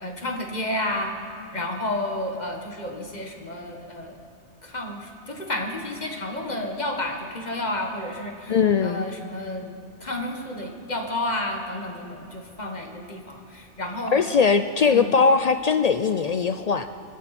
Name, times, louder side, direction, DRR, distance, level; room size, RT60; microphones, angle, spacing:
voice 1, 0.0-1.2 1.5-4.2 4.6-8.6 8.8-14.2 14.9-15.2, left 1 dB, 35° left, 2 dB, 1.5 m, -31 dB
voice 2, 8.5-9.0 14.1-16.9, left 5 dB, 75° left, 10 dB, 0.3 m, -20 dB
23.0 x 14.0 x 4.2 m, 2.5 s
omnidirectional pair, 1.2 m